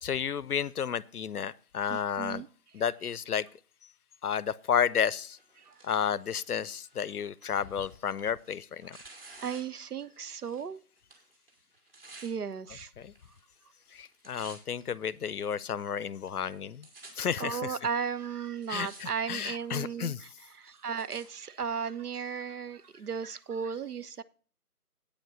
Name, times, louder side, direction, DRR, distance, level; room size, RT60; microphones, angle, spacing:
voice 1, 0.0-2.4 2.7-3.5 4.2-5.4 5.8-9.0 13.0-13.1 13.9-16.9 17.2-17.8 18.7-20.2, left 8 dB, 70° left, 0.6 m, -32 dB
voice 2, 1.9-2.5 5.6-5.8 9.4-10.8 12.2-12.9 17.4-24.2, right 6 dB, 75° right, 0.7 m, -35 dB
Tearing, 5.2-10.7 11.0-12.3 13.1-13.6 13.9-14.8 15.5-15.6 16.3-16.4 16.5-17.1 17.9-18.0 18.5-19.1 19.4-19.8 20.4-21.3 22.0-22.1, right 2 dB, 40° right, 2.3 m, -53 dB
8.8 x 5.0 x 7.0 m
figure-of-eight pair, 155°, 46 cm